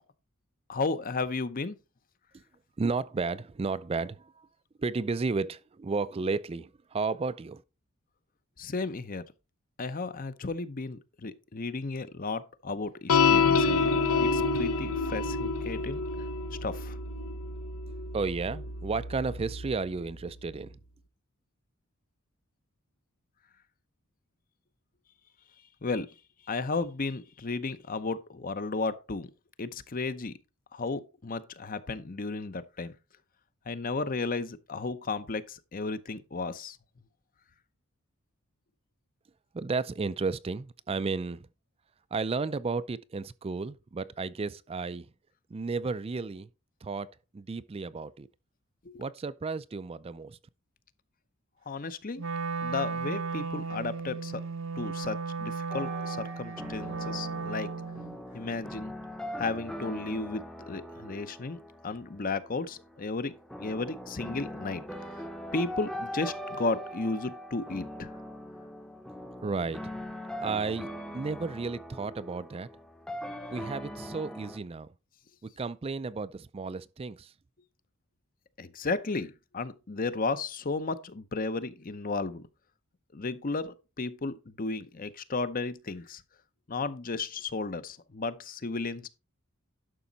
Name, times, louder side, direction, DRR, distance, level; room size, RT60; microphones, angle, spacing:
voice 1, 0.7-1.8 8.6-9.2 9.8-16.0 16.6-17.0 25.8-26.1 26.5-29.3 29.6-30.3 30.7-32.9 33.7-36.8 48.8-49.0 51.7-52.3 52.6-54.4 54.8-57.7 58.3-58.9 59.4-61.6 61.8-64.8 65.5-68.1 78.6-82.5 83.1-86.2 86.7-89.1, left 3 dB, 40° left, 0.7 m, -34 dB
voice 2, 2.8-4.5 4.8-7.6 18.1-20.8 39.5-41.5 42.1-45.1 45.5-46.5 46.8-48.3 49.0-50.4 69.4-69.8 70.3-70.9 71.1-72.7 73.5-74.9 75.4-77.3, right 4 dB, 25° right, 0.4 m, -33 dB
sound 1, 13.1-19.7, left 4 dB, 80° left, 1.0 m, -28 dB
Wind instrument woodwind instrument, 52.2-58.2, right 4 dB, 65° right, 0.7 m, -35 dB
sound 2, 55.7-74.6, equal, 5° left, 0.7 m, -41 dB
11.5 x 6.2 x 4.0 m
head